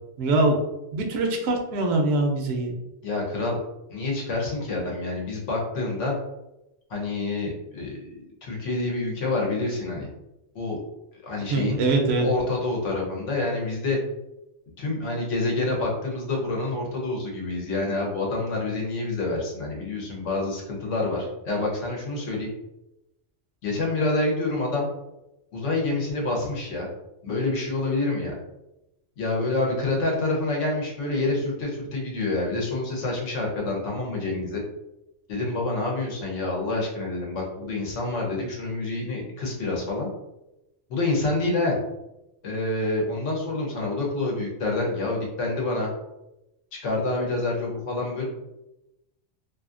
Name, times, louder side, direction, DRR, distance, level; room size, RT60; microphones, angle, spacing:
voice 1, 0.2-0.6 0.9-2.8 11.5-12.3, right 2 dB, 65° right, 2 dB, 0.8 m, -23 dB
voice 2, 3.0-3.6 3.9-6.1 6.9-8.0 8.4-10.1 10.5-10.8 11.2-11.8 12.1-14.0 14.8-22.5 23.6-24.9 25.5-26.9 27.2-28.3 29.2-34.6 35.3-40.1 40.9-41.8 42.4-45.9 46.7-48.3, left 2 dB, 75° left, -1 dB, 1.2 m, -27 dB
2.7 x 2.6 x 2.4 m, 0.92 s
omnidirectional pair, 1.3 m